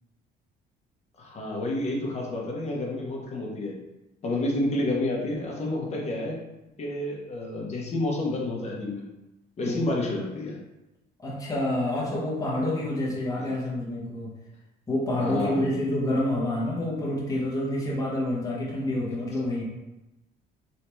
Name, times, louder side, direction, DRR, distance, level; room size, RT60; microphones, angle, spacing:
voice 1, 1.2-3.7 4.2-6.4 6.8-9.0 9.6-10.6 13.4-13.6 15.2-15.9, left 2 dB, 40° left, -2 dB, 1.0 m, -29 dB
voice 2, 11.2-14.4 14.9-19.7, left 1 dB, 20° left, -5 dB, 1.1 m, -28 dB
3.3 x 2.9 x 3.0 m, 0.99 s
cardioid pair, 110°, 17 cm